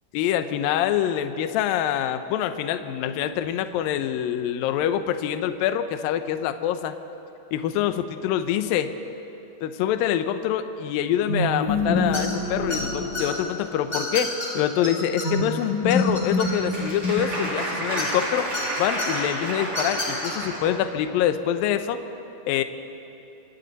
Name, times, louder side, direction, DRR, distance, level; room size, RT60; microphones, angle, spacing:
voice 1, 0.1-6.9 7.5-8.9 9.6-14.3 14.5-18.5 18.8-22.0 22.5-22.6, left 10 dB, 75° left, 9 dB, 2.4 m, -25 dB
sound 1, 11.3-13.8 15.2-17.7, left 2 dB, 50° left, 3.5 m, -26 dB
sound 2, 12.1-12.4 12.7-13.2 13.9-14.5 14.8-14.9 15.2-15.3 15.6-16.8 18.0-18.6 19.0-19.1 19.7-20.3, left 2 dB, 10° left, 4.8 m, -30 dB
Applause, 16.0-20.8, right 1 dB, 35° right, 4.7 m, -31 dB
26.0 x 25.0 x 4.1 m, 3.0 s
omnidirectional pair, 4.5 m